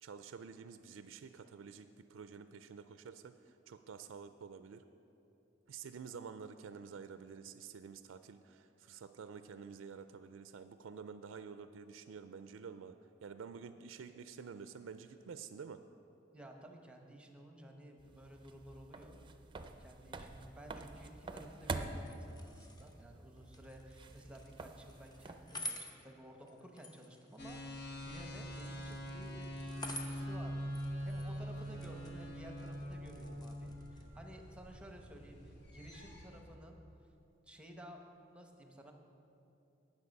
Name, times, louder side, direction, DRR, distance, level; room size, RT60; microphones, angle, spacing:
voice 1, 0.0-4.9 5.7-15.8, right 6 dB, 85° right, 10 dB, 0.4 m, -50 dB
voice 2, 16.3-19.2 19.6-29.5 29.8-30.7 31.0-36.8 37.4-38.0 38.3-38.9, equal, 5° right, 3 dB, 0.9 m, -54 dB
sound 1, 18.0-25.7, right 3 dB, 25° right, 0.5 m, -47 dB
sound 2, 21.7-34.1, left 1 dB, 20° left, 0.9 m, -51 dB
sound 3, 27.4-36.4, equal, 60° left, 1.9 m, -44 dB
18.0 x 6.4 x 5.3 m, 2.8 s
head